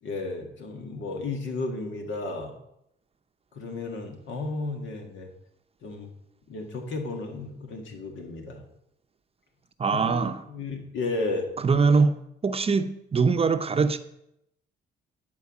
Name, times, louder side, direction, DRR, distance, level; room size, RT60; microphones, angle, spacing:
voice 1, 0.0-2.6 3.5-5.3 5.8-6.1 6.5-8.6 9.9-11.5, left 3 dB, 75° left, 1.8 m, -33 dB
voice 2, 9.8-10.4 11.6-14.0, right 4 dB, 30° right, 0.6 m, -23 dB
9.7 x 4.7 x 7.1 m
cardioid pair, 90°, 20 cm